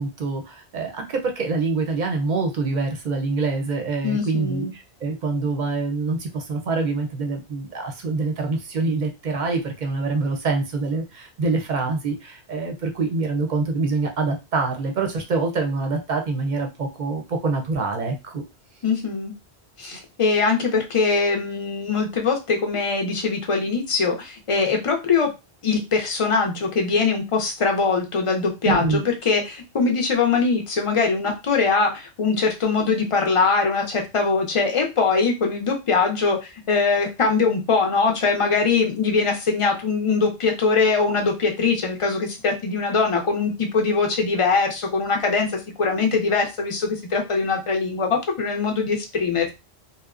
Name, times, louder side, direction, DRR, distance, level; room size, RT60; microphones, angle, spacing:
voice 1, 0.0-18.4 28.6-29.0, right 3 dB, 50° right, 3 dB, 0.6 m, -25 dB
voice 2, 4.0-4.7 18.8-19.3 19.8-25.3 25.6-49.5, left 4 dB, 45° left, 2 dB, 0.4 m, -22 dB
2.8 x 2.1 x 2.4 m, 0.25 s
omnidirectional pair, 1.1 m